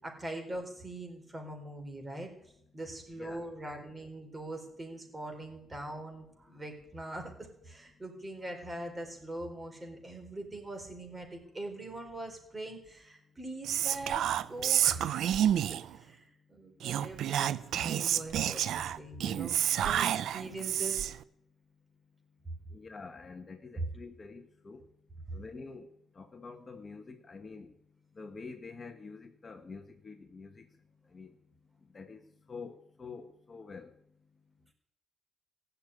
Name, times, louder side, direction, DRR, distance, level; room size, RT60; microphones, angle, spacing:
voice 1, 0.0-2.3 2.7-15.3 15.9-21.0 23.8-23.9 25.3-25.4, right 1 dB, 20° right, 4.5 m, -42 dB
voice 2, 3.2-3.5 22.7-24.8 25.3-27.7 28.1-30.7 31.1-31.3 31.9-32.2 32.5-33.9, left 4 dB, 35° left, 1.3 m, -47 dB
Whispering, 13.6-16.0 16.8-21.2, right 10 dB, 75° right, 0.6 m, -29 dB
16.0 x 6.9 x 9.9 m
cardioid pair, 90°, 0 cm